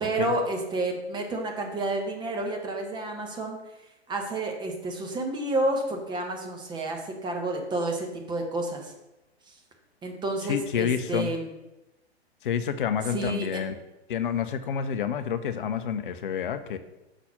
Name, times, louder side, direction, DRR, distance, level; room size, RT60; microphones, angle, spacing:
voice 1, 0.0-3.6 4.1-8.9 9.5-9.6 10.0-11.5 13.1-13.6, right 2 dB, 15° right, 2 dB, 1.1 m, -30 dB
voice 2, 10.5-11.3 12.4-13.7 14.1-16.8, left 8 dB, 50° left, 11 dB, 0.7 m, -28 dB
6.0 x 4.1 x 5.6 m, 0.96 s
figure-of-eight pair, 110°, 33 cm